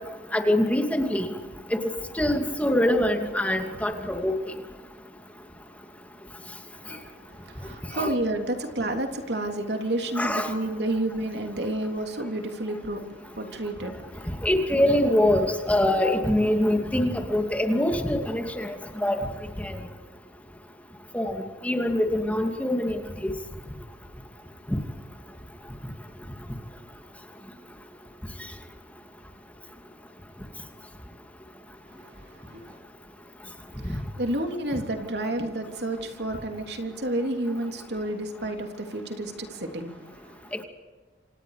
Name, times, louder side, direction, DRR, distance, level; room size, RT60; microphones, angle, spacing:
voice 1, 0.3-1.3 1.7-1.8 2.2-4.3 7.9-8.1 10.2-10.5 14.4-18.7 19.0-19.3 19.6-19.8 21.1-21.4 21.6-23.0 24.7-24.8, left 1 dB, 10° left, 4 dB, 2.5 m, -24 dB
voice 2, 6.7-14.3 31.9-32.8 33.7-40.5, right 1 dB, 70° right, 4 dB, 3.3 m, -31 dB
28.5 x 27.0 x 5.1 m, 1.3 s
head